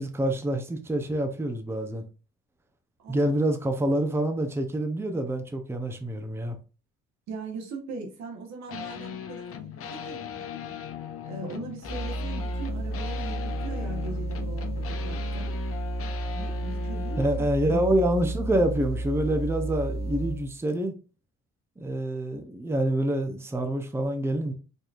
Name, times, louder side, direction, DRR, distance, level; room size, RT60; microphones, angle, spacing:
voice 1, 0.0-2.0 3.1-6.6 17.2-20.9 21.8-24.5, right 1 dB, 10° right, 0.6 m, -27 dB
voice 2, 3.0-3.3 7.3-10.8 11.2-15.5 16.3-17.9, right 3 dB, 65° right, 1.3 m, -40 dB
sound 1, 8.7-17.4, left 8 dB, 50° left, 0.7 m, -39 dB
sound 2, 11.8-20.5, right 1 dB, 45° right, 1.8 m, -32 dB
4.3 x 3.2 x 2.4 m
cardioid pair, 90°, 30 cm